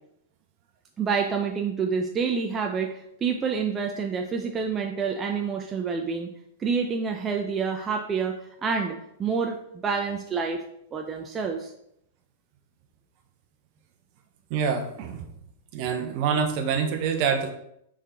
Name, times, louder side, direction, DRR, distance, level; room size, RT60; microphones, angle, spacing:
voice 1, 1.0-6.3 6.6-8.4 8.6-10.6 10.9-11.7, right 5 dB, 20° right, 3 dB, 0.7 m, -28 dB
voice 2, 14.5-15.3 15.7-17.5, right 6 dB, 45° right, 5 dB, 1.1 m, -26 dB
6.6 x 5.0 x 3.7 m, 0.76 s
figure-of-eight pair, 100°, 0 cm